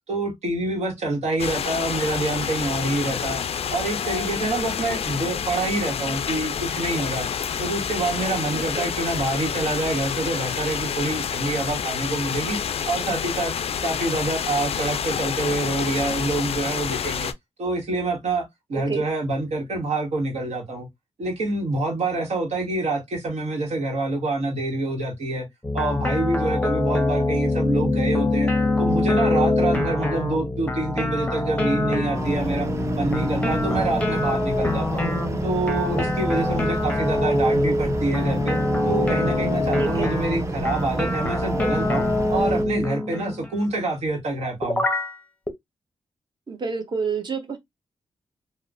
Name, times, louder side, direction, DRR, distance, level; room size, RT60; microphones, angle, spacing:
voice 1, 0.1-3.4 3.7-7.3 7.6-12.6 12.9-13.5 13.8-17.3 17.6-20.9 21.2-25.5 25.7-28.5 28.8-32.7 33.0-35.1 35.4-38.6 38.8-44.8, right 2 dB, 70° right, 1.2 m, -26 dB
sound 1, 1.4-17.3, left 7 dB, 60° left, 0.4 m, -28 dB
voice 2, 8.5-8.9 18.9-19.0 39.8-40.1 46.5-47.6, right 5 dB, 40° right, 0.9 m, -29 dB
sound 2, 25.6-43.5 44.6-45.1 45.5-45.6, left 2 dB, 10° left, 0.7 m, -24 dB
sound 3, 32.1-42.6, right 3 dB, 25° right, 0.5 m, -30 dB
3.0 x 2.1 x 2.5 m
cardioid pair, 75°, 11 cm